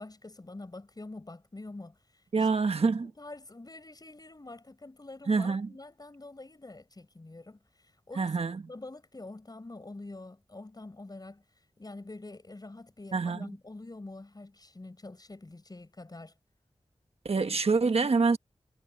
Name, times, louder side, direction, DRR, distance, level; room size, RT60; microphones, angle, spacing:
voice 1, 0.0-2.5 3.0-16.3, left 2 dB, 35° left, 7.3 m, -46 dB
voice 2, 2.3-3.1 5.3-5.7 8.2-8.6 13.1-13.5 17.2-18.4, right 4 dB, 65° right, 1.3 m, -26 dB
wide cardioid pair, 90°, 11 cm